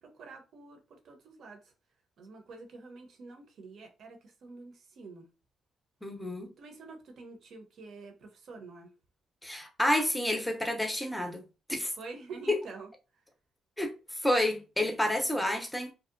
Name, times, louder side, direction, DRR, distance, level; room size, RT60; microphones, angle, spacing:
voice 1, 0.0-1.7 2.2-5.3 6.6-8.9 12.0-12.9, right 3 dB, 65° right, 0.7 m, -47 dB
voice 2, 6.0-6.5 9.4-11.4 11.7-11.9 12.5-12.6 13.8-15.9, left 1 dB, 5° left, 0.6 m, -29 dB
2.7 x 2.1 x 2.4 m
cardioid pair, 90°, 0 cm